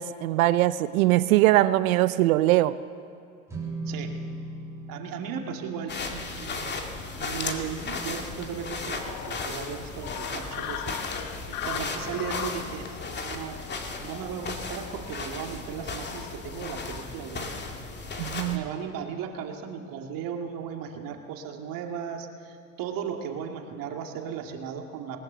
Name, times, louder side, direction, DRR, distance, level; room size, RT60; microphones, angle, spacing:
voice 1, 0.0-2.8 18.2-18.6, right 16 dB, 65° right, 15 dB, 0.8 m, -21 dB
sound 1, 3.5-9.9, right 2 dB, 5° right, 6.7 m, -41 dB
voice 2, 3.8-4.2 4.9-6.8 7.2-11.2 11.5-12.9 13.2-13.6 14.0-17.5 18.5-25.2, right 7 dB, 45° right, 3 dB, 2.4 m, -36 dB
sound 2, 5.9-18.6, left 3 dB, 20° left, 2.4 m, -35 dB
sound 3, 8.9-17.0, left 9 dB, 50° left, 1.6 m, -40 dB
20.0 x 19.5 x 6.9 m, 2.6 s
hypercardioid pair, 90°, 46 cm